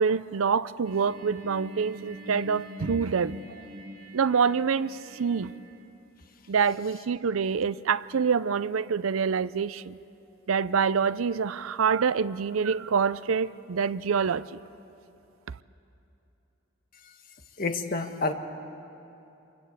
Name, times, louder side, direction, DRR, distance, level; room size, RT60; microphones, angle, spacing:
voice 1, 0.0-3.4 4.1-5.5 6.5-10.0 10.5-14.5 15.5-15.6, right 6 dB, 90° right, 0.5 m, -26 dB
sound 1, 0.8-5.8, equal, 40° right, 2.5 m, -43 dB
voice 2, 17.6-18.3, left 3 dB, 45° left, 1.4 m, -29 dB
27.0 x 23.0 x 8.1 m
head